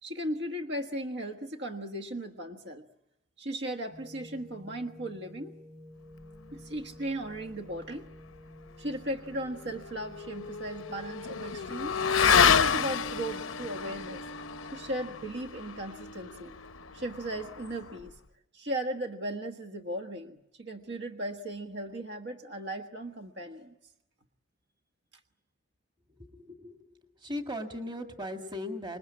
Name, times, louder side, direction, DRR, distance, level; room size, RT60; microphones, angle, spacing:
voice 1, 0.0-2.8 3.4-5.5 6.5-8.1 8.8-12.0 12.4-14.2 14.7-16.5 16.9-18.2 18.5-23.7, right 1 dB, 55° right, 5 dB, 1.4 m, -37 dB
sound 1, 3.9-15.3, left 1 dB, 40° right, 4.3 m, -52 dB
Motorcycle / Accelerating revving vroom, 9.3-18.1, left 6 dB, 85° left, 0.9 m, -29 dB
voice 2, 26.2-26.9 27.2-29.0, left 1 dB, 20° right, 4 dB, 1.9 m, -38 dB
27.0 x 21.0 x 8.6 m, 0.84 s
head